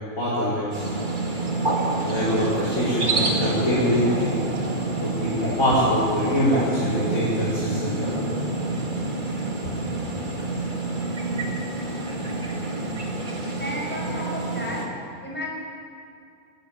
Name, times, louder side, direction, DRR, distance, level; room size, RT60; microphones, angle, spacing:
voice 1, 0.2-0.9 2.0-4.3 5.0-8.1, equal, 70° left, -9 dB, 5.2 m, -24 dB
sound 1, 0.7-14.9, right 2 dB, 35° right, 2.3 m, -27 dB
voice 2, 13.6-14.8 15.2-15.5, equal, 5° left, -2 dB, 5.5 m, -32 dB
20.5 x 14.5 x 9.1 m, 2.4 s
omnidirectional pair, 1.5 m